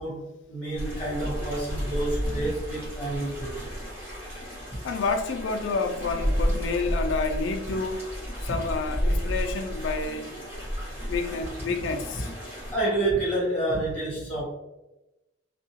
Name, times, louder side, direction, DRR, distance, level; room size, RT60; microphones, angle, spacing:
voice 1, 0.0-3.5 4.7-4.8 8.5-8.6 12.7-14.4, right 2 dB, 10° left, 1.2 m, -29 dB
sound 1, 0.8-12.7, equal, 10° right, 1.1 m, -32 dB
voice 2, 4.8-8.0 8.4-10.3 11.1-12.3, left 4 dB, 80° left, 0.3 m, -29 dB
2.7 x 2.3 x 2.8 m
head